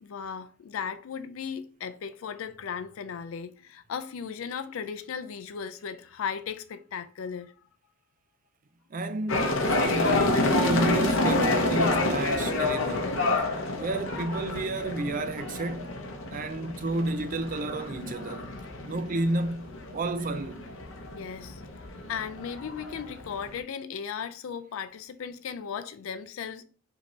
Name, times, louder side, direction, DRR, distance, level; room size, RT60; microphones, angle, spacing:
voice 1, 0.0-7.5 21.1-21.6 22.1-26.6, left 7 dB, 90° left, 0.4 m, -36 dB
voice 2, 8.9-13.2 13.7-16.0 16.3-18.5 18.8-20.7, right 2 dB, 40° right, 0.4 m, -31 dB
sound 1, 9.3-23.6, left 2 dB, 70° left, 0.8 m, -28 dB
5.1 x 2.8 x 3.0 m
head